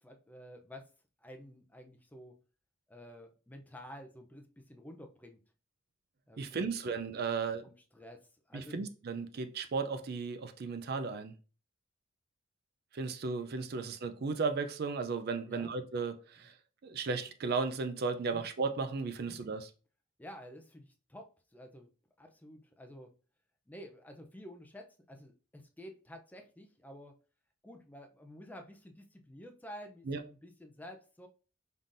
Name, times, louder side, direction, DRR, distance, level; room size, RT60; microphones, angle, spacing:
voice 1, 0.0-0.9 1.2-2.4 2.9-5.4 6.3-6.6 7.6-8.8 13.7-13.9 15.4-15.7 16.4-16.5 18.3-18.5 19.3-19.4 20.2-21.9 22.2-23.1 23.7-27.2 27.6-31.3, equal, 10° left, 0.5 m, -51 dB
voice 2, 6.4-7.7 8.5-11.3 12.9-16.5 16.8-19.7 30.1-30.2, right 4 dB, 50° right, 0.4 m, -35 dB
5.6 x 3.7 x 2.5 m
head